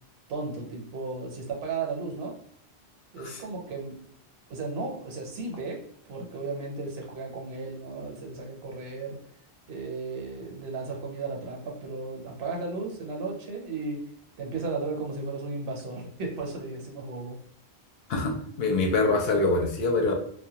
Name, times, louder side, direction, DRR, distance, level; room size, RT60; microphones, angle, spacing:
voice 1, 0.3-2.4 3.1-4.0 4.5-9.3 9.7-14.1 14.4-17.4, right 3 dB, 70° right, 1 dB, 0.9 m, -35 dB
voice 2, 18.1-20.1, left 3 dB, 70° left, 2 dB, 0.7 m, -25 dB
2.1 x 2.1 x 2.8 m, 0.63 s
omnidirectional pair, 1.1 m